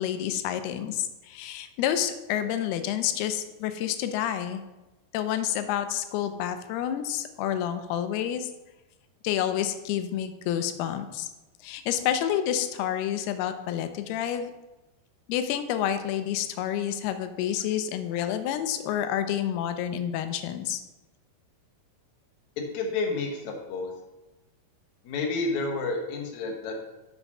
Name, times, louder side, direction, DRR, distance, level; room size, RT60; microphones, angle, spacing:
voice 1, 0.0-4.6 5.1-8.5 9.2-11.3 11.6-14.5 15.3-20.8, left 10 dB, 85° left, 10 dB, 2.6 m, -29 dB
voice 2, 22.7-23.9 25.0-26.8, left 3 dB, 65° left, 2 dB, 2.1 m, -30 dB
6.7 x 5.9 x 5.4 m, 1.0 s
omnidirectional pair, 4.5 m